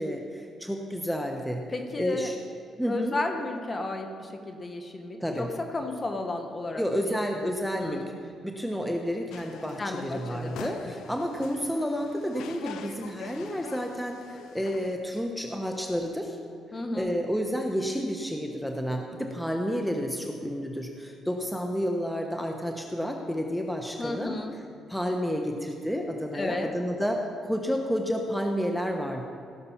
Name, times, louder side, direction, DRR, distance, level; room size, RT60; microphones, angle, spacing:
voice 1, 0.0-1.6 2.0-2.3 2.8-3.2 5.2-5.5 6.7-8.1 8.4-16.4 16.9-24.3 24.9-29.2, equal, 5° left, 2 dB, 1.1 m, -30 dB
voice 2, 1.7-2.3 2.9-6.8 7.1-7.2 7.4-8.1 9.8-10.9 16.7-17.2 24.0-24.6 26.3-26.7, left 2 dB, 30° left, 5 dB, 1.4 m, -33 dB
sound 1, 9.3-15.0, left 7 dB, 85° left, 0.7 m, -44 dB
17.0 x 6.7 x 5.8 m, 2.5 s
cardioid pair, 90°, 0 cm